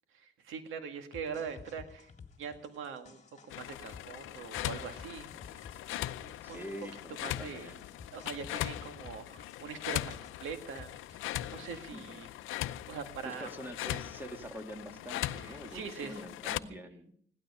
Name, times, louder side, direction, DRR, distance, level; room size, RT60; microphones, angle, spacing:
voice 1, 0.2-2.1 2.4-5.7 6.2-6.6 7.2-7.7 8.1-12.3 12.9-13.5 15.4-16.2 16.7-16.8, right 6 dB, 85° right, 7 dB, 2.0 m, -43 dB
sound 1, 1.1-11.8, left 5 dB, 35° left, 2.0 m, -54 dB
sound 2, 3.5-16.6, left 15 dB, 90° left, 0.6 m, -40 dB
voice 2, 5.4-6.0 6.4-8.0 11.9-12.2 13.2-17.1, equal, 10° right, 5 dB, 2.3 m, -46 dB
17.0 x 12.0 x 5.6 m, 0.62 s
cardioid pair, 90°, 20 cm